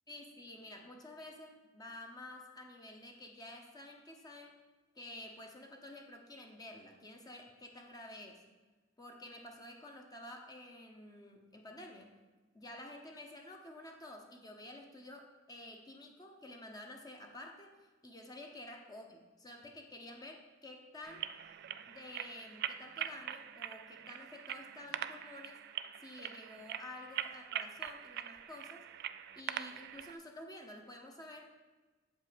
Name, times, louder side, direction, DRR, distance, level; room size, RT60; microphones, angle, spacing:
voice 1, 0.1-4.5 4.9-8.4 9.0-12.2 12.5-17.7 18.0-21.3 21.9-25.6 26.0-28.8 29.3-31.6, left 1 dB, 20° left, 2 dB, 0.8 m, -50 dB
sound 1, 21.0-30.2, right 10 dB, 55° right, 0.3 m, -43 dB
8.0 x 5.4 x 5.1 m, 1.2 s
head